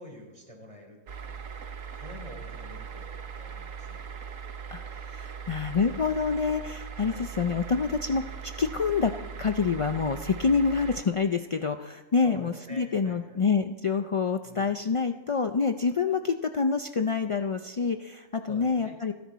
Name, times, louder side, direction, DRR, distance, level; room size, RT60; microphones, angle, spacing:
voice 1, 0.0-1.4 1.9-4.0 7.1-7.3 12.2-13.4 14.4-14.8 18.5-19.0, equal, 25° right, 1 dB, 3.8 m, -47 dB
sound 1, 1.1-11.0, right 6 dB, 90° right, 1.4 m, -40 dB
voice 2, 4.7-9.1 9.4-19.1, left 5 dB, 55° left, 7 dB, 0.3 m, -27 dB
29.0 x 10.5 x 4.2 m, 1.2 s
omnidirectional pair, 1.3 m